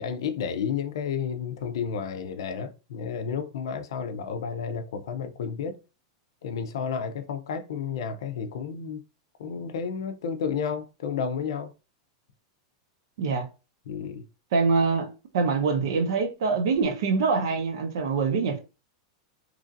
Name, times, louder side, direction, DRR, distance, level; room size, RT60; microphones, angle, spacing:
voice 1, 0.0-5.8 6.4-9.0 9.4-11.7 13.9-14.3, left 6 dB, 75° left, 0.4 m, -31 dB
voice 2, 14.5-15.1 15.3-18.6, right 4 dB, 65° right, 0.7 m, -24 dB
3.0 x 2.5 x 2.5 m
supercardioid pair, 175°, 3 cm